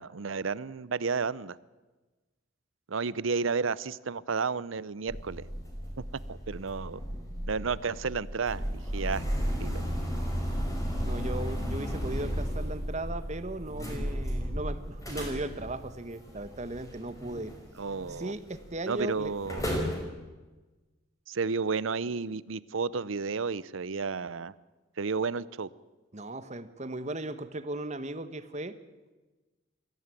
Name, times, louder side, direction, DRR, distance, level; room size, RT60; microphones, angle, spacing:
voice 1, 0.0-1.6 2.9-5.5 6.3-7.0 7.5-9.2 9.6-9.8 17.8-18.3 18.9-19.6 21.3-24.5 25.0-25.7, right 5 dB, 80° right, 19 dB, 0.7 m, -32 dB
sound 1, 5.1-18.2 18.5-18.8 19.3-20.0, equal, 15° left, 5.2 m, -34 dB
voice 2, 11.0-17.5 18.1-19.3 26.1-28.8, right 1 dB, 35° right, 11 dB, 1.2 m, -37 dB
22.5 x 15.0 x 9.1 m, 1.2 s
head